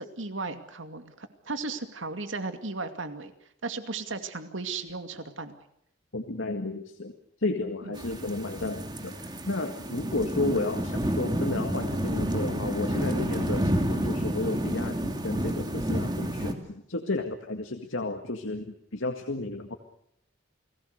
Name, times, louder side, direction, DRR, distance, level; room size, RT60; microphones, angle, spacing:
voice 1, 0.0-3.3 3.6-5.5 7.9-8.0, right 3 dB, 80° right, 8 dB, 2.4 m, -35 dB
voice 2, 6.1-7.1 7.4-19.8, left 2 dB, 80° left, 5 dB, 2.0 m, -32 dB
sound 1, 8.0-16.5, equal, 20° right, 2.5 m, -30 dB
29.5 x 20.0 x 6.7 m, 0.74 s
head